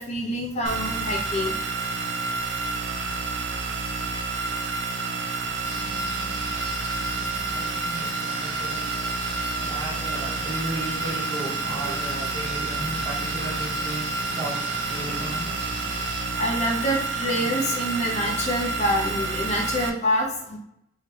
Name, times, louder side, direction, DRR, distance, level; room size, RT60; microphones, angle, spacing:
voice 1, 0.0-1.6 4.5-4.7 5.6-5.8 16.4-20.6, equal, 40° left, 0.6 m, -26 dB
sound 1, 0.6-19.9, right 3 dB, 85° right, 0.5 m, -29 dB
sound 2, 5.6-16.3, left 3 dB, 85° left, 0.7 m, -40 dB
voice 2, 7.0-16.1, right 1 dB, 30° right, 1.5 m, -36 dB
3.2 x 2.8 x 3.2 m
head